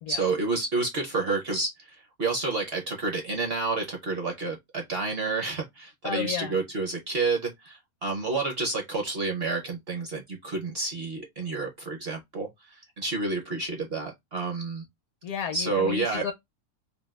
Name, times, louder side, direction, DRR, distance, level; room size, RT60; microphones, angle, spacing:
voice 1, 0.1-14.8 15.5-16.3, right 3 dB, 55° right, 0.8 m, -29 dB
voice 2, 6.0-6.5 15.2-16.3, left 8 dB, 70° left, 1.0 m, -33 dB
3.3 x 2.2 x 2.3 m
omnidirectional pair, 1.6 m